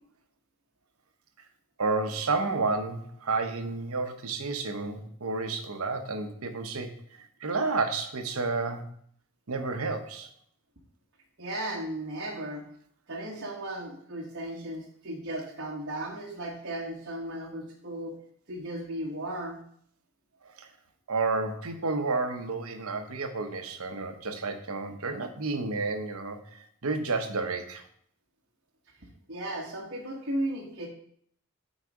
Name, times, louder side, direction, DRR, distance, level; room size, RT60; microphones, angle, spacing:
voice 1, 1.8-8.9 9.5-10.3 20.4-20.7 21.1-27.9, right 3 dB, 85° right, 7 dB, 0.9 m, -31 dB
voice 2, 11.4-12.6 13.1-18.1 18.5-19.6 29.3-30.9, right 1 dB, 55° right, -3 dB, 1.4 m, -35 dB
8.2 x 4.1 x 4.8 m, 0.63 s
head